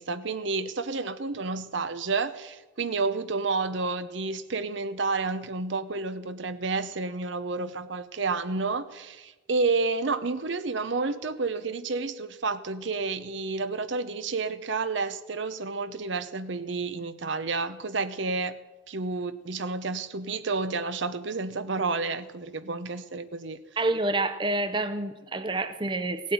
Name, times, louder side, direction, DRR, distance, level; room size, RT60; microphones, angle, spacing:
voice 1, 0.0-18.6 18.9-23.6, right 3 dB, 70° right, 0.8 m, -30 dB
voice 2, 23.8-26.3, right 2 dB, 25° right, 0.6 m, -28 dB
17.0 x 8.5 x 9.4 m
head